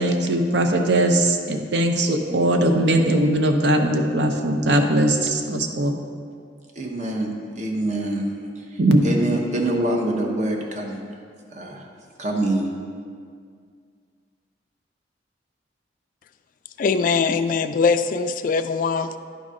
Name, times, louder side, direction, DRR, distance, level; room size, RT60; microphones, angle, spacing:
voice 1, 0.0-6.0 8.8-9.2, right 1 dB, 70° right, 5 dB, 0.7 m, -20 dB
voice 2, 6.7-11.0 11.5-11.9 12.2-12.8, right 1 dB, 40° right, 0 dB, 0.9 m, -26 dB
voice 3, 16.8-19.2, left 5 dB, 45° left, 10 dB, 0.3 m, -21 dB
10.5 x 4.0 x 4.9 m, 2.1 s
head